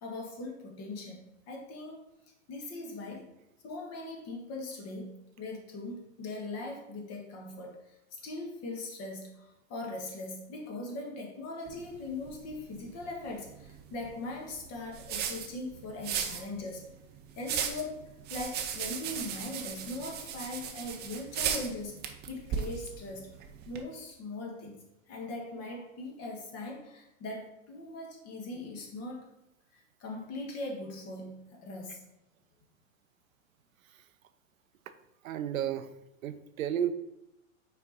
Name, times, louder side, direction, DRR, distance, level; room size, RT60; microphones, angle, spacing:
voice 1, 0.0-2.0 2.5-3.3 3.6-16.8 17.3-18.0 18.3-22.0 22.3-23.3 23.6-24.8 25.1-29.3 29.7-32.0, left 2 dB, 35° left, 1 dB, 1.6 m, -40 dB
sound 1, 11.7-23.8, right 8 dB, 25° right, 0.6 m, -38 dB
voice 2, 35.2-35.9 36.2-36.9, right 10 dB, 80° right, 11 dB, 0.7 m, -32 dB
6.0 x 4.4 x 4.0 m, 0.88 s
hypercardioid pair, 120°, 40 cm